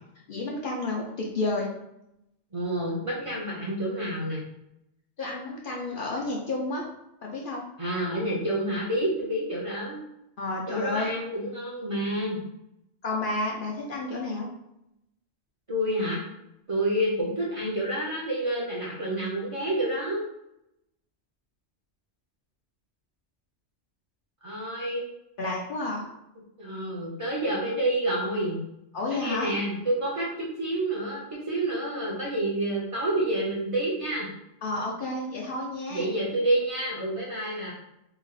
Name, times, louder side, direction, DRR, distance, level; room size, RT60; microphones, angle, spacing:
voice 1, 0.3-1.7 5.2-6.9 7.2-7.6 10.4-11.1 13.0-14.5 25.4-26.1 28.9-29.5 34.6-36.0, left 2 dB, 55° left, -2 dB, 0.7 m, -31 dB
voice 2, 2.5-4.4 7.8-10.0 10.7-12.4 15.7-16.2 16.7-20.2 24.4-25.0 26.6-28.6 29.1-34.3 35.9-37.7, right 1 dB, 35° right, -4 dB, 0.7 m, -28 dB
3.1 x 2.4 x 3.7 m, 0.83 s
omnidirectional pair, 1.2 m